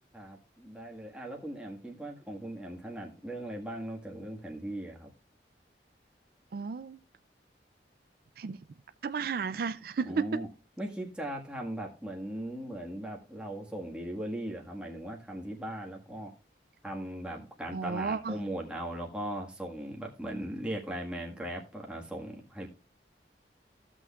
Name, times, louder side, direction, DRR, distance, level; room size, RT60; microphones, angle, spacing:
voice 1, 0.1-5.1 10.0-10.5 10.8-16.3 16.8-22.7, right 1 dB, 5° right, 1.6 m, -38 dB
voice 2, 6.5-7.0 8.4-8.6 9.0-10.4 17.7-18.4, right 5 dB, 55° right, 0.4 m, -33 dB
15.5 x 6.2 x 2.4 m
head